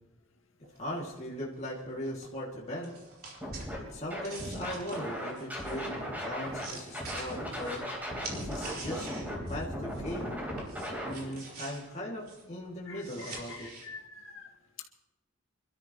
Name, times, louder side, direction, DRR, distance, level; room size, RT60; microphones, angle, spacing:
sound 1, 0.6-10.3 10.6-13.9, right 3 dB, 45° right, 4.1 m, -47 dB
voice 1, 0.8-2.9 3.7-5.9 6.2-7.8 8.3-9.1 9.3-10.4 11.0-13.7, equal, 35° left, -4 dB, 2.3 m, -39 dB
Scratching (performance technique), 3.4-3.8 4.1-6.6 6.9-11.1, equal, 10° right, 3.9 m, -37 dB
voice 2, 12.9-14.8, left 5 dB, 75° left, 2 dB, 2.1 m, -47 dB
26.5 x 13.0 x 3.0 m, 1.0 s
head